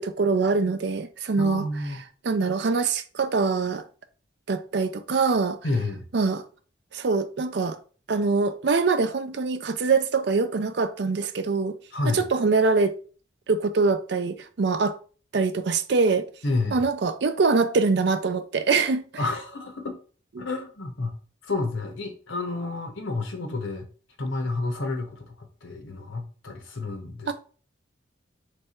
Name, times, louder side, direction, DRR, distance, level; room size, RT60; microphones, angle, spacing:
voice 1, 0.0-1.6 2.2-3.8 4.5-5.6 6.1-6.4 6.9-7.8 8.1-11.7 12.0-12.9 13.5-15.0 15.3-16.3 16.7-19.0 20.4-20.5 27.3-27.4, right 4 dB, 60° right, 0.4 m, -23 dB
voice 2, 1.4-2.0 5.6-6.1 11.9-12.2 16.4-16.8 19.2-20.0 20.4-21.1 21.4-23.9 24.2-27.3, left 2 dB, 80° left, 1.0 m, -30 dB
3.4 x 3.2 x 4.3 m
head